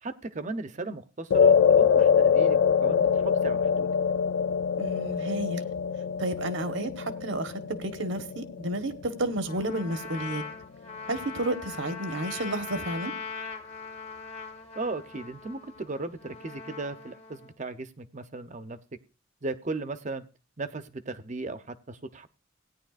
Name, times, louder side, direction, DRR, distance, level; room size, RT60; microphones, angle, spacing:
voice 1, 0.0-3.9 14.7-18.8 19.4-20.2 20.6-22.3, right 3 dB, 40° right, 0.7 m, -36 dB
sound 1, 1.3-9.8, left 7 dB, 80° left, 0.4 m, -24 dB
voice 2, 4.8-5.6 6.2-10.4 11.1-13.1, right 1 dB, 75° right, 1.2 m, -31 dB
Trumpet, 9.5-17.5, left 5 dB, 30° left, 1.1 m, -40 dB
17.0 x 9.8 x 2.5 m
head